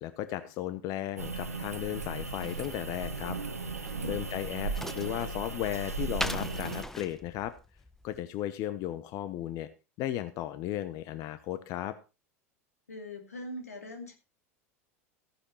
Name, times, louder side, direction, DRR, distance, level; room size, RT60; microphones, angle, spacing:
voice 1, 0.0-3.4 4.0-7.5 8.0-9.7 10.0-11.9, left 13 dB, 45° left, 13 dB, 0.8 m, -35 dB
sound 1, 1.2-6.8, right 3 dB, 90° right, 1.1 m, -36 dB
sound 2, 2.4-8.2, left 1 dB, 5° left, 0.8 m, -41 dB
voice 2, 4.1-4.6 12.9-14.1, left 1 dB, 85° left, 5 dB, 2.5 m, -43 dB
15.0 x 9.8 x 3.0 m, 0.30 s
figure-of-eight pair, 85°, 8 cm